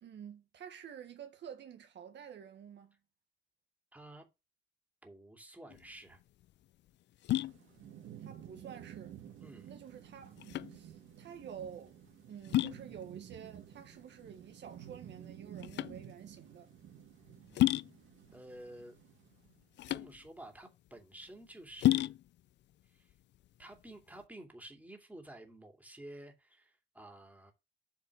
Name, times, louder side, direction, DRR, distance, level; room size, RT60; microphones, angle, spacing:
voice 1, 0.0-3.0 8.2-9.2 9.7-10.4 10.7-12.0 12.3-16.7, right 8 dB, 65° right, 1.4 m, -49 dB
voice 2, 3.9-4.3 5.0-6.2 9.4-9.7 18.3-19.0 19.9-22.2 22.9-23.1 23.6-27.5, right 1 dB, 5° right, 2.7 m, -51 dB
sound 1, 5.7-24.2, left 14 dB, 65° left, 0.4 m, -36 dB
Thunderstorm / Rain, 7.4-19.6, right 10 dB, 80° right, 2.2 m, -52 dB
8.3 x 4.2 x 6.2 m
cardioid pair, 90°, 20 cm